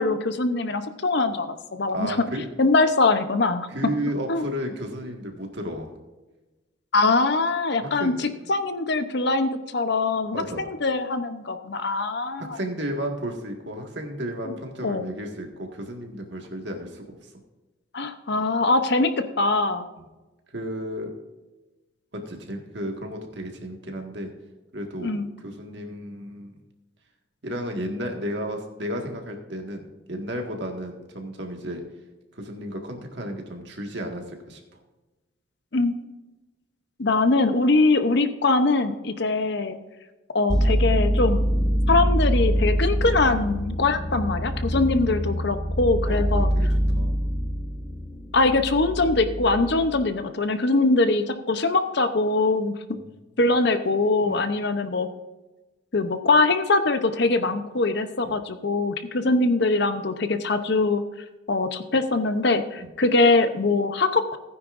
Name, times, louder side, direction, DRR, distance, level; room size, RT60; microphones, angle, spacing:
voice 1, 0.0-2.2 2.6-3.7 4.3-4.4 6.9-12.6 14.5-14.6 14.8-15.0 17.9-19.1 19.4-19.8 25.0-25.3 35.7-36.0 37.0-39.8 40.3-41.4 41.9-46.5 48.3-52.8 53.4-55.1 55.9-61.0 61.5-64.4, left 3 dB, 55° left, 10 dB, 0.8 m, -22 dB
voice 2, 1.9-2.5 3.7-5.9 7.8-8.2 10.3-10.6 12.2-17.3 20.0-20.1 20.5-21.1 22.1-24.3 24.7-26.5 27.4-31.8 32.3-34.6 44.6-45.2 46.0-46.7 46.9-47.1 52.9-53.1 54.2-54.5 58.2-58.4 62.8-62.9, equal, 60° right, 3 dB, 1.8 m, -33 dB
sound 1, 40.5-50.1, equal, 5° left, 0.8 m, -24 dB
16.0 x 9.6 x 2.6 m, 1.1 s
head